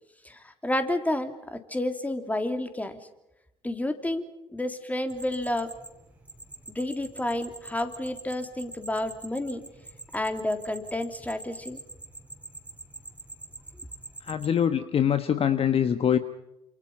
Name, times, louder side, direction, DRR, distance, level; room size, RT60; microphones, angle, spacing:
voice 1, 0.2-3.0 3.6-4.2 4.5-5.7 6.7-9.6 10.1-11.8, left 1 dB, 10° left, 7 dB, 3.3 m, -30 dB
sound 1, 5.1-14.5, right 2 dB, 10° right, 4.7 m, -45 dB
voice 2, 14.2-16.2, left 8 dB, 40° left, 11 dB, 1.3 m, -24 dB
29.0 x 27.5 x 5.7 m, 0.92 s
figure-of-eight pair, 55°, 15 cm